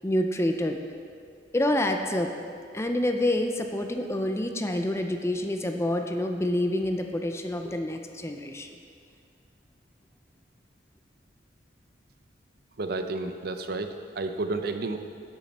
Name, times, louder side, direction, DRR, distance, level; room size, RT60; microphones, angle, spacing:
voice 1, 0.0-0.8 1.5-2.3 2.7-8.7, left 1 dB, 15° left, 5 dB, 0.5 m, -27 dB
voice 2, 12.8-15.0, right 3 dB, 55° right, 7 dB, 0.5 m, -31 dB
11.0 x 7.5 x 4.2 m, 2.3 s
head